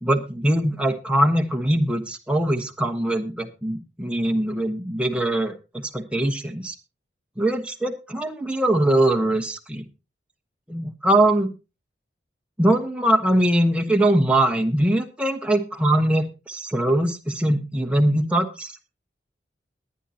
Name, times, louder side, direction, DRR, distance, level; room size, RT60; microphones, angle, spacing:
voice 1, 0.0-6.7 7.4-9.8 10.7-11.5 12.6-18.7, right 1 dB, 5° right, 3 dB, 1.3 m, -22 dB
22.0 x 9.2 x 2.9 m, 0.28 s
head